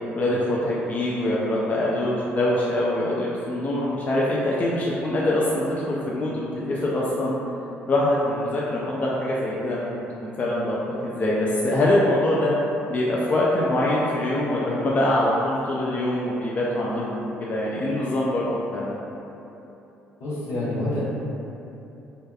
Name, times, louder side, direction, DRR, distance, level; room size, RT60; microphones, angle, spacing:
voice 1, 0.2-7.3 7.9-9.9 10.2-10.8 11.0-12.5 12.9-18.9, left 1 dB, 35° left, -5 dB, 0.3 m, -24 dB
voice 2, 20.2-21.0, left 1 dB, 75° left, -9 dB, 0.8 m, -27 dB
2.6 x 2.3 x 2.2 m, 2.9 s
supercardioid pair, 70°, 4 cm